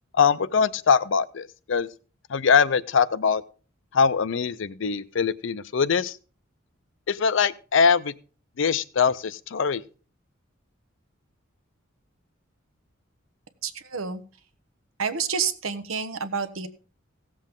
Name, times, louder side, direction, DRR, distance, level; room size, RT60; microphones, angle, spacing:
voice 1, 0.1-1.9 2.3-3.4 3.9-6.2 7.1-8.1 8.6-9.8, left 6 dB, 65° left, 17 dB, 0.5 m, -22 dB
voice 2, 13.6-14.2 15.0-16.7, right 6 dB, 85° right, 10 dB, 1.1 m, -29 dB
17.0 x 7.5 x 3.7 m, 0.38 s
head